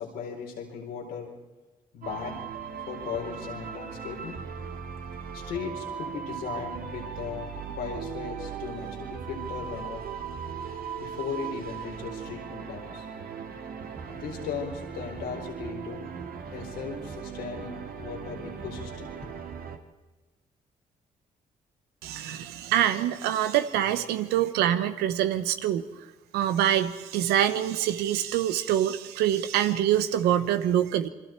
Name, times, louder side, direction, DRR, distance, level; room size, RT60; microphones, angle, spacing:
voice 1, 0.0-1.3 1.9-2.4 2.9-4.4 5.3-10.0 11.0-13.1 14.1-16.1 16.5-19.1, left 6 dB, 90° left, 0 dB, 4.1 m, -37 dB
sound 1, 2.0-19.8, right 7 dB, 70° right, 1.9 m, -38 dB
voice 2, 22.0-25.8 26.3-31.1, right 11 dB, 90° right, 11 dB, 1.0 m, -25 dB
27.5 x 23.0 x 4.5 m, 1.2 s
supercardioid pair, 55°, 16 cm